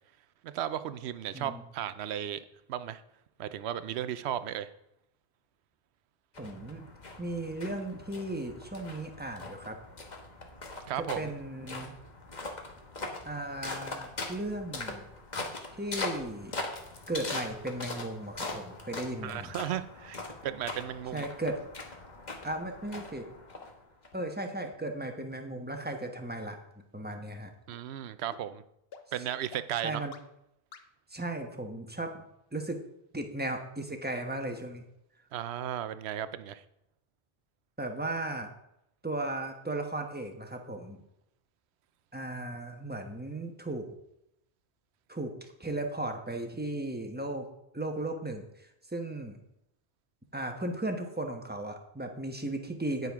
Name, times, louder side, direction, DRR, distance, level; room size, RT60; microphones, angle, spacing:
voice 1, 0.4-2.4 2.7-3.0 3.4-4.7 10.9-11.3 19.2-21.3 27.7-28.6 29.1-30.1 35.3-36.6, right 11 dB, 75° right, 13 dB, 0.8 m, -35 dB
sound 1, 6.3-24.1, left 2 dB, 40° left, 1.3 m, -41 dB
voice 2, 6.4-6.9 7.2-9.8 11.2-12.0 13.2-15.0 15.7-16.5 17.1-19.5 21.1-21.6 22.4-23.3 24.1-26.6 26.9-27.5 29.8-30.1 31.1-32.2 32.5-32.8 33.1-34.8 37.8-38.5 39.0-41.0 42.1-43.9 45.1-47.5 47.7-49.4 50.3-53.1, right 1 dB, 10° right, 4 dB, 0.9 m, -36 dB
sound 2, 24.1-24.2 24.7-24.8 25.3-25.4 25.9-26.0 26.5-26.6 27.1-27.2 27.7-27.8 28.3-28.4 28.9-29.0 29.5-29.6 30.1-30.2 30.7-30.8, left 6 dB, 65° left, 1.0 m, -50 dB
9.4 x 9.1 x 3.5 m, 0.82 s
omnidirectional pair, 1.1 m